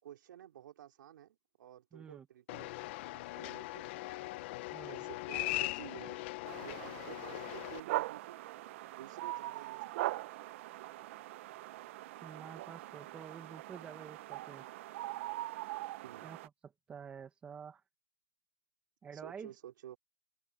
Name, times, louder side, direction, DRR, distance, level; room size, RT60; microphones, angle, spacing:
voice 1, 0.0-2.7 3.0-4.1 4.8-6.2 6.6-8.4 8.9-10.3 16.0-16.3 19.1-20.0, right 11 dB, 45° right, 4.3 m, -52 dB
voice 2, 1.9-2.2 4.7-5.0 12.2-14.6 16.2-16.4 16.6-17.8 19.0-19.5, right 7 dB, 10° right, 1.6 m, -49 dB
sound 1, 2.5-7.8, left 20 dB, 25° left, 0.8 m, -40 dB
sound 2, 6.5-16.5, right 17 dB, 30° right, 0.9 m, -42 dB
open air
hypercardioid pair, 165°, 14 cm